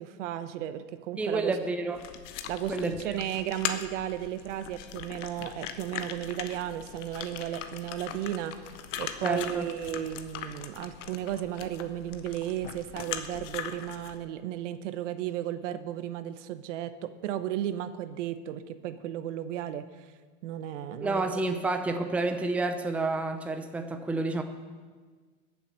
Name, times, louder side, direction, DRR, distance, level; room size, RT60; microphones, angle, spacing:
voice 1, 0.0-1.5 2.5-8.5 9.0-20.1 20.4-21.2, right 11 dB, 85° right, 11 dB, 1.0 m, -34 dB
voice 2, 1.2-2.1 2.7-3.0 9.2-9.7 21.0-24.4, right 3 dB, 5° right, 6 dB, 0.6 m, -29 dB
sound 1, 1.9-14.2, left 9 dB, 85° left, 1.2 m, -40 dB
21.5 x 7.3 x 5.7 m, 1.5 s
supercardioid pair, 150°, 35 cm